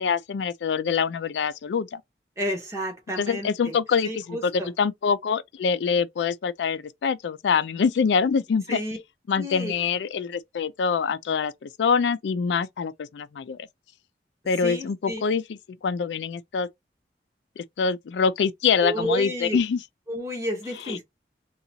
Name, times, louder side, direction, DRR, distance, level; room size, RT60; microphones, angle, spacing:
voice 1, 0.0-2.0 3.2-4.5 4.8-8.8 9.3-13.6 14.5-15.6 15.8-16.7 17.6-19.8 20.9-21.0, left 6 dB, 85° left, 0.4 m, -25 dB
voice 2, 2.4-3.8 4.0-4.7 8.7-9.0 9.4-9.7 14.6-15.3 18.8-19.6 20.1-21.0, equal, 15° right, 1.2 m, -31 dB
3.8 x 2.3 x 2.7 m
head